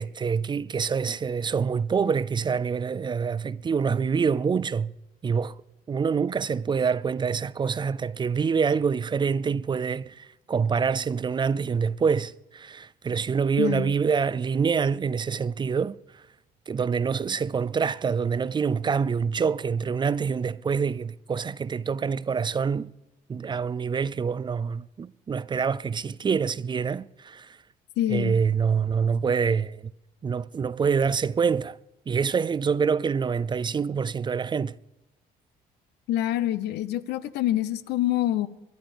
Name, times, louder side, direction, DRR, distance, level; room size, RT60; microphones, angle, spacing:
voice 1, 0.0-4.9 5.2-5.6 5.9-16.0 16.7-22.9 23.3-27.6 28.1-29.9 30.2-31.8 32.1-34.7, right 6 dB, 25° right, 0.5 m, -26 dB
voice 2, 13.6-13.9 28.0-28.4 36.1-38.5, left 13 dB, 80° left, 1.0 m, -26 dB
22.5 x 12.0 x 5.2 m
cardioid pair, 110°, 17 cm